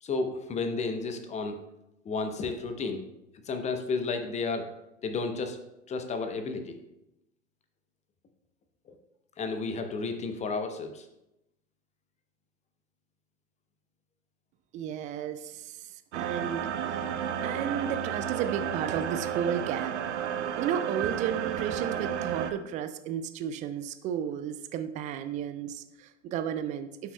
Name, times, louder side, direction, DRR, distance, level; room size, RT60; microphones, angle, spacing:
voice 1, 0.0-1.6 2.0-3.0 3.4-4.7 5.0-5.6 5.9-6.8 9.4-11.1, left 4 dB, 20° left, 7 dB, 0.8 m, -32 dB
voice 2, 14.7-17.1 17.4-20.2 20.6-27.1, right 9 dB, 20° right, 10 dB, 0.4 m, -33 dB
sound 1, 16.1-22.5, right 9 dB, 65° right, 0.7 m, -32 dB
12.0 x 5.9 x 2.2 m, 0.90 s
figure-of-eight pair, 85°, 38 cm